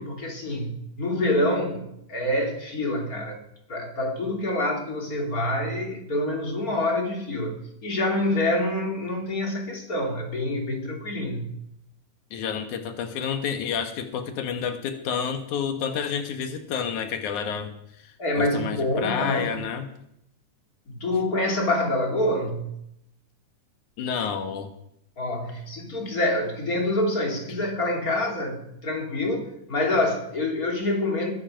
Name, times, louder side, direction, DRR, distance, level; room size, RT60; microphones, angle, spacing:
voice 1, 0.0-3.4 3.7-7.5 7.8-11.5 18.2-19.5 20.9-22.7 25.2-31.3, left 1 dB, 30° left, 1 dB, 3.2 m, -26 dB
voice 2, 12.3-17.7 18.0-19.9 24.0-24.7, left 7 dB, 80° left, 7 dB, 2.8 m, -29 dB
21.0 x 11.5 x 5.2 m, 0.75 s
omnidirectional pair, 3.4 m